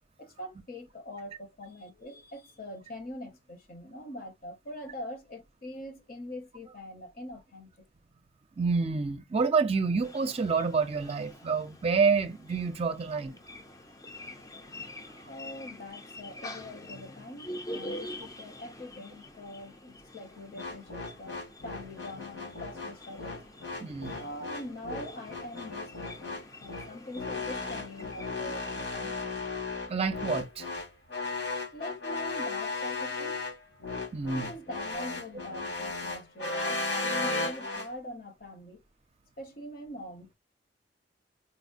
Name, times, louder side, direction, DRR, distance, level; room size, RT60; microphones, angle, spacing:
voice 1, 0.2-7.7 15.3-23.4 24.2-29.4 31.7-33.4 34.3-38.8 39.4-40.3, left 1 dB, 55° left, 1.0 m, -43 dB
voice 2, 8.6-13.4 23.8-24.2 29.9-30.6 34.1-34.5, right 5 dB, 35° right, 0.5 m, -28 dB
sound 1, 10.0-28.9, left 1 dB, 20° left, 0.5 m, -46 dB
sound 2, 20.6-37.9, left 3 dB, 90° left, 2.4 m, -35 dB
4.1 x 2.1 x 2.5 m
head